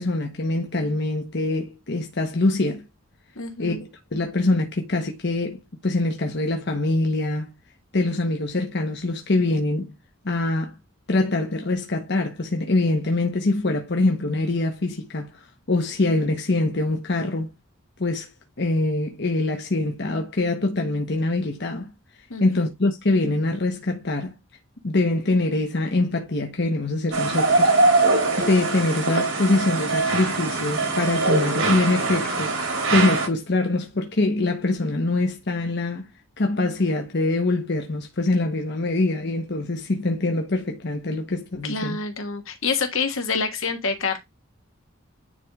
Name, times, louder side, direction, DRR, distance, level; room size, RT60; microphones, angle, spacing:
voice 1, 0.0-2.8 3.6-3.8 4.1-7.5 7.9-9.9 10.2-10.7 11.1-15.3 15.7-17.5 18.0-18.3 18.6-21.9 22.4-24.4 24.8-27.7 28.4-36.1 36.4-42.0, left 2 dB, 55° left, 1.1 m, -24 dB
voice 2, 3.3-3.8 22.3-22.4 41.6-44.2, left 4 dB, 75° left, 1.5 m, -27 dB
sound 1, 27.1-33.3, right 3 dB, 75° right, 2.6 m, -22 dB
9.9 x 3.3 x 3.6 m
head